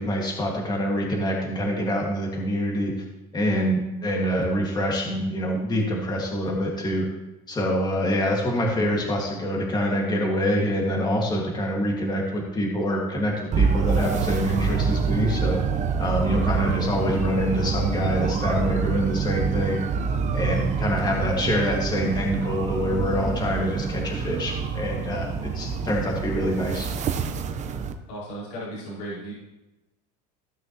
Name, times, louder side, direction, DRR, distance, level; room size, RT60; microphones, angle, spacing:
voice 1, 0.0-3.0 3.3-7.1 7.5-15.6 16.0-19.8 20.3-26.9, equal, 20° left, -1 dB, 1.9 m, -25 dB
sound 1, 13.5-27.9, right 5 dB, 35° right, 0.9 m, -26 dB
voice 2, 28.1-29.3, right 1 dB, 80° left, -8 dB, 3.6 m, -35 dB
15.0 x 6.2 x 3.0 m, 1.0 s
supercardioid pair, 115°, 20 cm